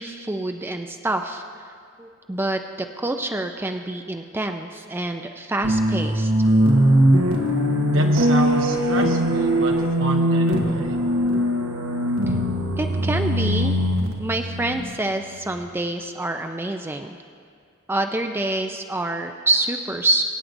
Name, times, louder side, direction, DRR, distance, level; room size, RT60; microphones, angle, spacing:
voice 1, 0.0-1.4 2.0-2.6 3.0-6.3 12.3-12.4 12.8-13.8 14.2-17.2 17.9-20.2, right 2 dB, 10° right, 5 dB, 0.4 m, -26 dB
sound 1, 5.6-15.5, equal, 85° right, 1.2 m, -21 dB
voice 2, 7.9-10.9, right 2 dB, 65° right, 3 dB, 1.1 m, -29 dB
23.5 x 9.3 x 2.6 m, 2.3 s
head